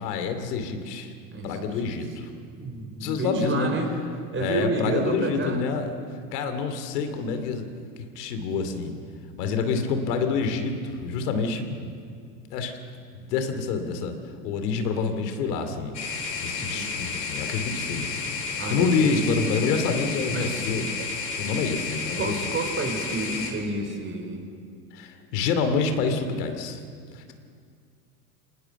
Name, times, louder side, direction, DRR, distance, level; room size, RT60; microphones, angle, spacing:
voice 1, 0.0-1.1 1.4-2.3 3.0-3.7 4.4-5.9 6.3-7.7 8.1-8.9 9.4-11.9 12.5-12.8 13.1-14.1 14.4-18.3 18.7-21.0 21.4-22.4 24.9-26.8 27.1-27.3, left 5 dB, 70° left, 7 dB, 2.7 m, -27 dB
voice 2, 1.3-1.8 2.6-3.9 4.3-5.6 11.5-11.6 16.6-17.1 18.6-19.6 20.3-20.7 21.0-21.1 22.2-24.4, right 3 dB, 25° right, 4 dB, 4.6 m, -30 dB
sound 1, 15.9-23.5, left 4 dB, 90° left, 4.2 m, -32 dB
25.0 x 19.5 x 6.9 m, 2.2 s
hypercardioid pair, 90°, 49 cm